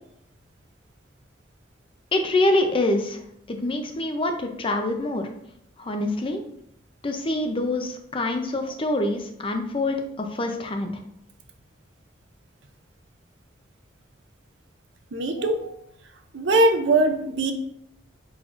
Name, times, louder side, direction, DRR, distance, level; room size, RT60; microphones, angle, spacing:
voice 1, 2.1-3.2 3.5-5.3 5.8-6.4 7.0-10.9, left 2 dB, 30° left, 5 dB, 0.5 m, -25 dB
voice 2, 15.1-15.8 16.3-17.5, right 2 dB, 70° right, 7 dB, 0.5 m, -21 dB
4.6 x 4.0 x 2.5 m, 0.73 s
head